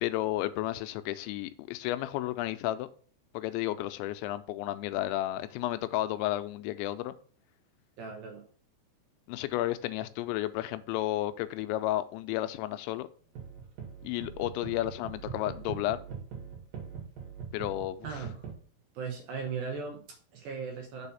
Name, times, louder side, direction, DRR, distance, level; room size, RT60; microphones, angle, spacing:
voice 1, 0.0-2.9 3.3-7.2 9.3-13.1 14.0-16.0 17.5-18.1, left 15 dB, 90° left, 11 dB, 2.9 m, -32 dB
voice 2, 8.0-8.4 18.0-18.5 18.9-21.1, right 5 dB, 75° right, 2 dB, 2.3 m, -38 dB
sound 1, 13.4-18.5, right 7 dB, 55° right, 3.4 m, -41 dB
7.0 x 4.1 x 5.6 m, 0.43 s
omnidirectional pair, 5.2 m